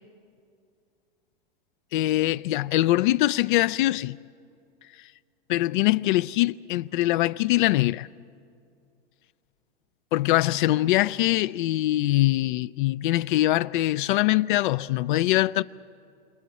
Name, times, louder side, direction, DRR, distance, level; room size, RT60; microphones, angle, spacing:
voice 1, 1.9-4.2 5.5-8.1 10.1-15.6, left 16 dB, 60° left, 0.4 m, -23 dB
28.0 x 26.5 x 4.1 m
hypercardioid pair, 130°, 29 cm